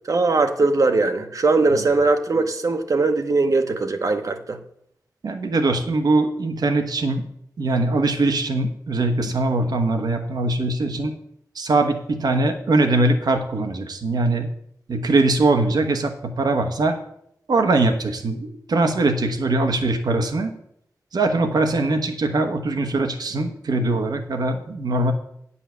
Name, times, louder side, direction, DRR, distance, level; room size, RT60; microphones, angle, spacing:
voice 1, 0.1-4.6, right 3 dB, 60° right, 7 dB, 0.9 m, -20 dB
voice 2, 5.2-7.2 7.6-11.1 11.5-14.5 14.9-17.0 17.5-20.5 21.1-25.1, right 2 dB, 85° right, 6 dB, 1.1 m, -21 dB
9.4 x 5.6 x 6.8 m, 0.72 s
wide cardioid pair, 85°, 7 cm